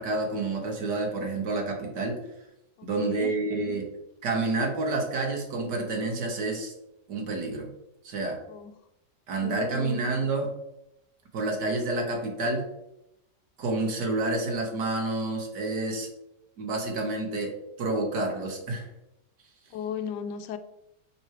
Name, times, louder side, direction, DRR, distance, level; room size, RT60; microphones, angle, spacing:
voice 1, 0.0-2.2 2.8-3.9 4.2-6.7 7.1-7.7 8.0-8.4 9.3-10.5 11.3-12.7 13.6-16.1 16.6-17.5 17.8-18.9, right 2 dB, 75° right, 2.0 m, -29 dB
voice 2, 2.8-3.3 8.5-8.7 9.4-10.0 19.7-20.6, left 8 dB, 80° left, 1.2 m, -35 dB
6.2 x 4.6 x 4.8 m
omnidirectional pair, 1.8 m